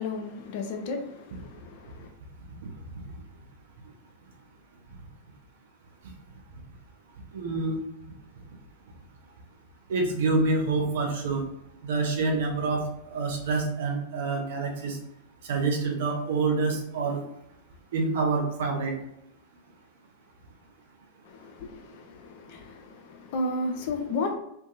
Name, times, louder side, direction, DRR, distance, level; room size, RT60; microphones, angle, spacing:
voice 1, 0.0-2.1 21.3-24.4, left 2 dB, 50° left, 0.4 m, -33 dB
voice 2, 7.3-7.8 9.9-11.4 11.8-15.0 15.4-17.2 17.9-18.9, right 3 dB, 60° right, 0.6 m, -27 dB
2.6 x 2.2 x 2.7 m
figure-of-eight pair, 90°, 0 cm